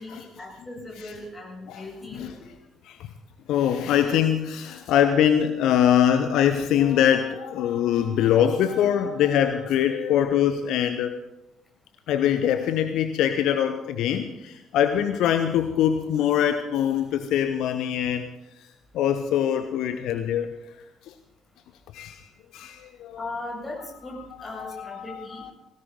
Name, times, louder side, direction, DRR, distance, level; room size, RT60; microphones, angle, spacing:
voice 1, 0.0-2.3 23.2-25.5, left 2 dB, 20° left, -1 dB, 7.6 m, -38 dB
voice 2, 3.5-11.1 12.1-18.3 18.9-20.5 21.1-21.2 21.9-22.2 22.5-23.2 24.5-25.5, left 9 dB, 60° left, 8 dB, 0.8 m, -23 dB
18.5 x 17.0 x 3.9 m, 0.89 s
figure-of-eight pair, 45°, 0 cm